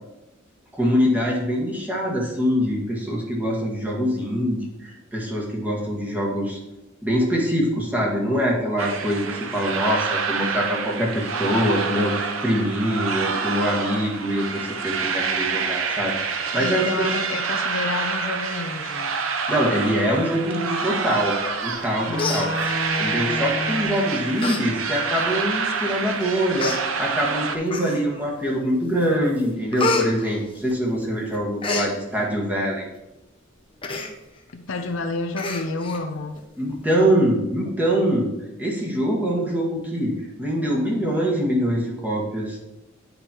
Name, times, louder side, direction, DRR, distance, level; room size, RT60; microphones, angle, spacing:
voice 1, 0.7-6.6 7.0-17.1 19.5-21.3 21.6-22.5 23.0-32.9 36.6-38.3 38.6-42.6, equal, 10° right, -3 dB, 1.6 m, -24 dB
sound 1, 8.8-27.6, right 5 dB, 90° right, 0.7 m, -27 dB
voice 2, 16.6-19.1 22.1-24.1 34.5-36.4, left 2 dB, 70° left, 7 dB, 0.6 m, -29 dB
Human voice, 21.7-21.9 22.1-23.1 23.8-24.0 24.4-24.6 25.0-25.1 25.9-26.0 26.6-26.8 27.7-28.2 28.7-29.1 29.3-31.0 31.3-31.9 33.8-34.1 34.5-34.6 34.9-35.0 35.4-36.0 36.4-36.5, left 3 dB, 25° left, 0.8 m, -28 dB
10.0 x 5.1 x 2.9 m, 0.97 s
head